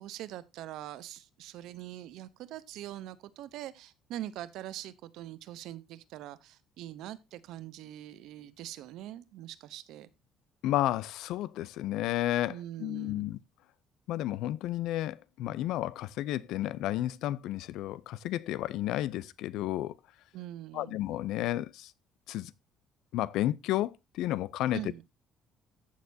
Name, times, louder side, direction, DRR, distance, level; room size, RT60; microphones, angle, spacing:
voice 1, 0.0-10.1 12.5-13.2 20.3-21.0 24.7-25.0, right 13 dB, 70° right, 0.8 m, -43 dB
voice 2, 10.6-13.4 14.1-19.9 20.7-21.9 22.3-22.5 23.1-24.8, left 14 dB, 70° left, 0.5 m, -32 dB
14.5 x 6.6 x 2.7 m
cardioid pair, 165°, 0 cm